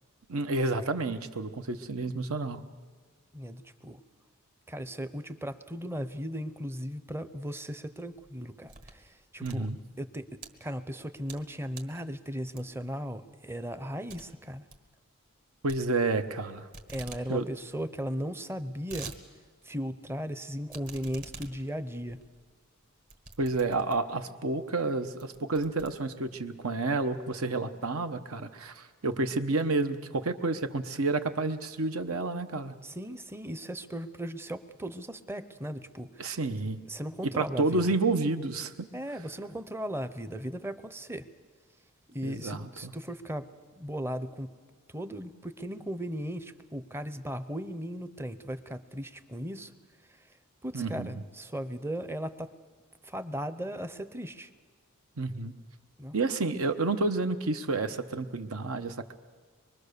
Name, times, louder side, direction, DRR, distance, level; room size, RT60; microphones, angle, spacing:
voice 1, 0.3-2.6 9.4-9.8 15.6-16.7 17.3-17.4 23.4-32.7 36.2-36.8 37.3-38.9 42.2-42.9 50.7-51.1 55.2-55.5 56.1-59.1, right 3 dB, 70° right, 9 dB, 1.0 m, -30 dB
voice 2, 3.3-4.0 4.7-9.7 10.0-14.6 16.9-19.1 19.6-22.2 32.8-36.4 36.9-38.0 38.9-41.3 42.1-44.5 44.9-49.7 50.2-50.3 50.6-52.5 53.0-54.5 56.0-56.1, equal, 10° right, 12 dB, 0.7 m, -37 dB
sound 1, 8.2-9.0 9.3-10.5 11.0-11.5 11.7-12.0 12.6-12.9 13.3-13.4 13.7-13.8 14.1-14.2 14.5-14.8 15.7-16.4 16.7-17.2 17.6-17.7 17.8-17.9 18.5-19.2 19.6-19.7 20.7-24.2 24.8-24.9 25.2-26.4, right 4 dB, 40° right, 1.6 m, -47 dB
24.0 x 22.5 x 6.7 m, 1.5 s
head